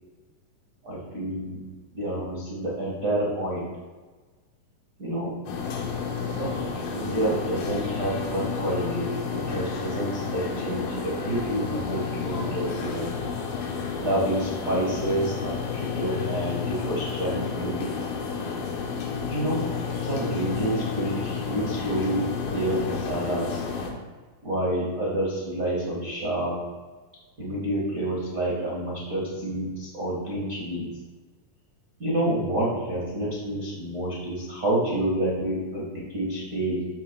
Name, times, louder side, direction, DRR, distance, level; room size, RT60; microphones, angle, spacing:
voice 1, 0.8-1.6 1.9-3.7 5.0-5.3 6.4-6.6 6.9-13.1 14.0-17.9 19.3-23.6 24.4-26.6 27.4-30.8 32.0-36.8, right 1 dB, 55° right, -6 dB, 0.9 m, -28 dB
sound 1, 5.5-23.9, left 6 dB, 80° left, 2.8 m, -31 dB
13.5 x 6.0 x 2.2 m, 1.3 s
omnidirectional pair, 4.2 m